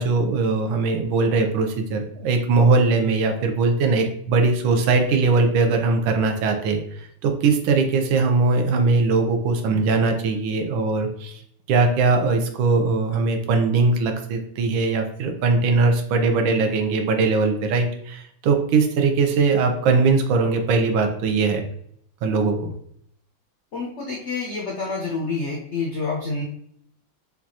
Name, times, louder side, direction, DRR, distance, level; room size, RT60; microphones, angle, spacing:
voice 1, 0.0-11.4 11.7-21.6 22.2-22.6, right 4 dB, 85° right, 5 dB, 1.5 m, -20 dB
voice 2, 23.7-26.4, left 3 dB, 85° left, -2 dB, 0.6 m, -28 dB
5.9 x 2.4 x 2.8 m, 0.68 s
omnidirectional pair, 2.1 m